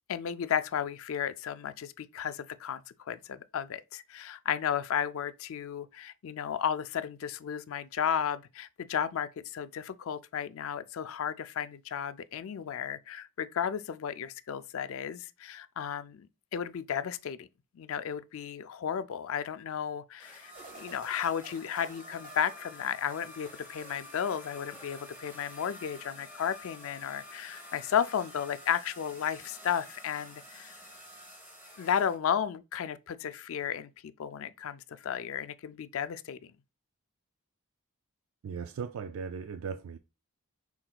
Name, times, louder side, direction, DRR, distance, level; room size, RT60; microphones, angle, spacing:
voice 1, 0.1-16.3 16.5-17.5 17.7-30.8 31.8-36.4, left 8 dB, 65° left, 0.4 m, -34 dB
sound 1, 20.2-32.2, left 1 dB, 10° right, 1.3 m, -50 dB
sound 2, 20.5-23.5 23.9-24.5, right 2 dB, 35° right, 1.0 m, -52 dB
voice 2, 38.4-40.0, right 6 dB, 65° right, 0.3 m, -37 dB
5.9 x 3.8 x 2.3 m
head